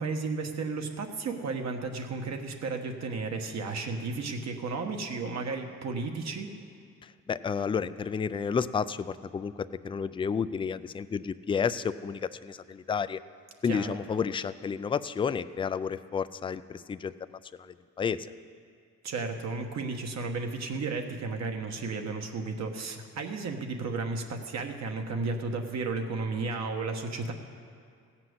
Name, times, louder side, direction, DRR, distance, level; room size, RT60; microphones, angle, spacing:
voice 1, 0.0-6.5 13.6-14.0 19.0-27.3, right 4 dB, 60° right, 4 dB, 1.3 m, -33 dB
voice 2, 7.0-13.2 13.6-18.2, left 6 dB, 20° left, 13 dB, 0.3 m, -31 dB
15.5 x 6.0 x 7.9 m, 2.3 s
cardioid pair, 90°, 30 cm